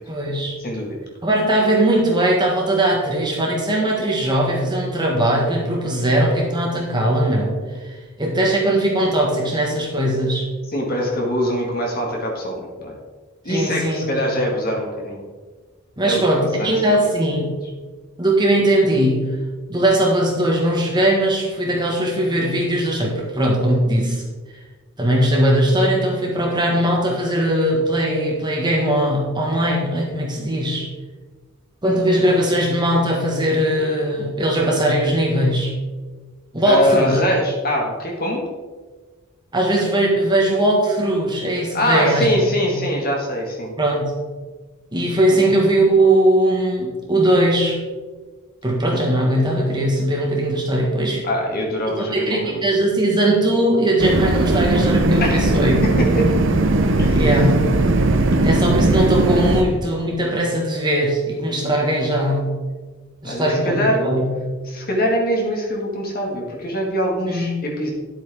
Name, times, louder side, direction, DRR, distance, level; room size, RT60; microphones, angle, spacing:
voice 1, 0.1-0.5 1.2-7.5 7.8-10.5 13.5-14.4 16.0-17.5 18.2-19.4 19.7-24.2 25.0-30.9 31.8-35.7 36.5-37.2 39.5-42.3 42.7-42.8 43.8-44.1 44.9-47.8 48.6-51.2 51.9-55.8 57.1-57.6 58.4-62.5 63.2-64.3 67.3-67.5, right 1 dB, 20° right, -2 dB, 1.5 m, -19 dB
voice 2, 0.6-1.0 10.7-12.9 13.4-15.2 16.0-16.9 36.7-38.4 41.7-43.7 45.3-45.5 51.2-52.6 55.2-55.6 56.0-56.2 57.0-57.2 63.2-64.1 64.7-67.9, equal, 45° left, -1 dB, 1.8 m, -23 dB
sound 1, 54.0-59.6, right 2 dB, 60° right, 0.8 m, -18 dB
11.0 x 8.1 x 3.6 m, 1.4 s
head